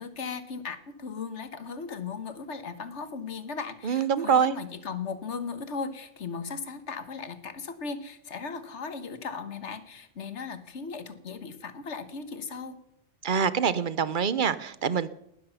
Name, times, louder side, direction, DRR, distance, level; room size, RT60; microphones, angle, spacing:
voice 1, 0.0-12.8, left 5 dB, 85° left, 11 dB, 1.6 m, -37 dB
voice 2, 3.8-4.6 13.2-15.1, right 7 dB, 50° right, 16 dB, 0.8 m, -25 dB
18.5 x 12.5 x 5.6 m, 0.77 s
omnidirectional pair, 1.2 m